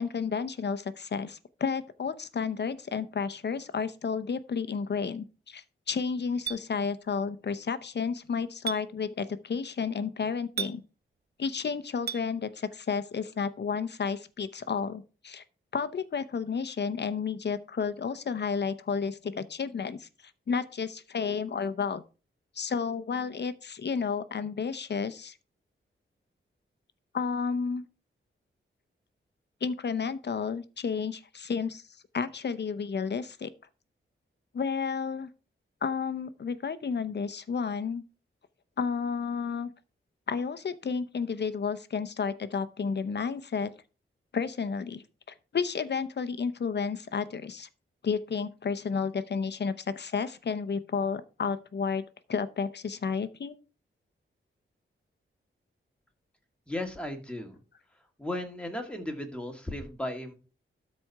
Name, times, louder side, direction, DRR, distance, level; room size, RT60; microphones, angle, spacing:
voice 1, 0.0-10.8 11.4-15.4 15.7-20.1 20.5-22.0 22.5-25.4 27.1-27.9 29.6-31.8 32.1-33.5 34.5-35.3 35.8-38.0 38.8-39.7 40.3-43.7 44.3-47.7 48.0-52.0 52.3-53.6, left 5 dB, 55° left, 13 dB, 0.8 m, -31 dB
Chink clink, 6.5-6.6 8.7-8.8 10.6-10.8 12.1-12.2, right 7 dB, 50° right, 0.7 m, -32 dB
voice 2, 56.7-57.6 58.2-60.3, left 1 dB, 5° left, 3 dB, 2.0 m, -35 dB
12.5 x 4.3 x 4.7 m, 0.34 s
wide cardioid pair, 105°, 21 cm